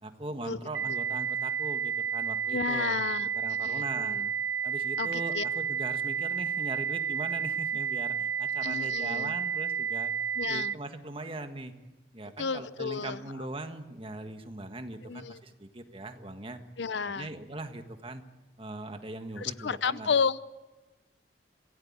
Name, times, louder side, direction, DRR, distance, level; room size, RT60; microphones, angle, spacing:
voice 1, 0.0-2.9 3.3-4.2 4.6-10.1 10.5-11.7 12.1-16.6 17.0-18.2 18.6-20.1, right 2 dB, 30° right, 7 dB, 1.6 m, -40 dB
sound 1, 0.7-10.7, right 7 dB, 85° right, 0.8 m, -31 dB
voice 2, 2.5-4.3 5.0-5.4 8.6-9.3 10.3-10.7 12.4-13.3 15.0-15.4 16.8-17.3 19.4-20.4, left 5 dB, 85° left, 17 dB, 0.7 m, -32 dB
25.5 x 16.5 x 8.7 m, 1.1 s
head